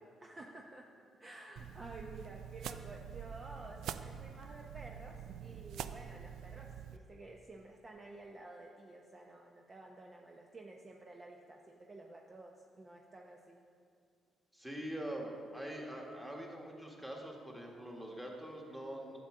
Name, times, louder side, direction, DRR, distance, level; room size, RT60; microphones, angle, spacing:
voice 1, 0.2-13.6, right 2 dB, 30° right, 0 dB, 0.7 m, -52 dB
sound 1, 1.6-7.0, right 8 dB, 80° right, 0.3 m, -46 dB
voice 2, 14.5-19.2, right 1 dB, 5° right, -1 dB, 1.6 m, -44 dB
11.0 x 7.7 x 3.8 m, 2.3 s
cardioid pair, 90°, 0 cm